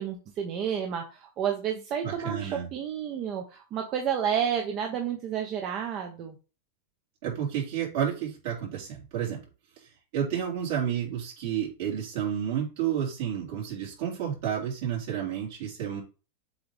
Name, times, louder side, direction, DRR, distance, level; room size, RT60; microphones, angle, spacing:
voice 1, 0.0-6.4, right 8 dB, 40° right, 3 dB, 1.0 m, -30 dB
voice 2, 2.0-2.7 7.2-9.4 10.1-16.0, right 9 dB, 65° right, -3 dB, 3.8 m, -31 dB
7.7 x 3.4 x 3.6 m, 0.33 s
supercardioid pair, 125°, 0 cm